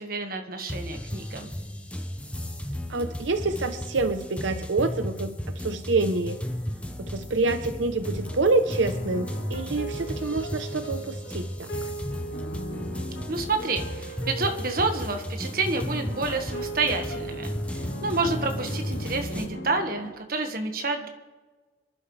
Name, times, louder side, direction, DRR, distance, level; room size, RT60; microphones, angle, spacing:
voice 1, 0.0-1.5 13.3-21.1, right 3 dB, 50° right, 5 dB, 1.5 m, -29 dB
sound 1, 0.7-19.4, equal, 5° left, 0.8 m, -34 dB
voice 2, 2.9-6.4 7.1-11.9, right 3 dB, 85° right, 8 dB, 0.8 m, -27 dB
sound 2, 8.0-20.1, right 1 dB, 60° left, 1.7 m, -38 dB
26.0 x 11.5 x 3.3 m, 1.3 s
head